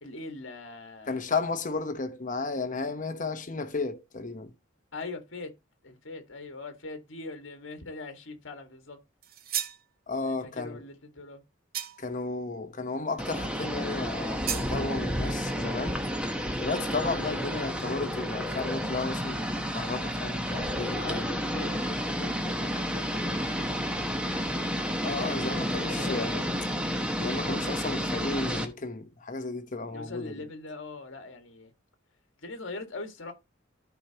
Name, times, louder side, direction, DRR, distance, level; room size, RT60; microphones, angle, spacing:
voice 1, 0.0-1.2 4.9-5.5 5.8-9.0 10.2-11.4 20.9-24.5 25.2-26.5 29.9-31.7 32.4-33.3, left 3 dB, 65° left, 1.7 m, -42 dB
voice 2, 1.1-4.5 10.1-10.8 12.0-16.0 16.6-21.4 25.0-26.5 27.2-30.5, left 3 dB, 40° left, 1.0 m, -33 dB
sound 1, 9.2-9.8 11.7-12.2 14.5-14.7, right 10 dB, 50° right, 0.7 m, -33 dB
sound 2, 13.2-28.7, equal, 5° right, 1.0 m, -31 dB
13.5 x 4.8 x 2.9 m
head